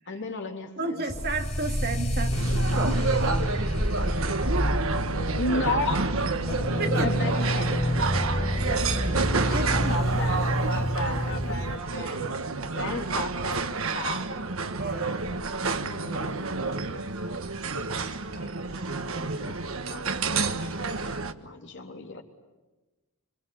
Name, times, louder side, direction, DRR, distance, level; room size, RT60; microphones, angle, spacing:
voice 1, 0.1-1.1 5.0-5.1 5.4-6.1 6.9-7.7 9.5-12.2 12.8-13.7 13.9-14.3 15.9-17.3 17.7-19.6 19.8-20.2 20.5-20.7 21.0-22.2, left 2 dB, 55° left, 3.6 m, -35 dB
voice 2, 0.8-2.4 2.8-3.5 6.8-7.5 9.5-10.0 14.8-15.1, right 3 dB, 45° right, 2.4 m, -32 dB
sound 1, 1.1-11.8, equal, 30° left, 4.5 m, -28 dB
sound 2, 2.3-21.3, right 3 dB, 65° right, 1.4 m, -29 dB
26.0 x 26.0 x 8.8 m
head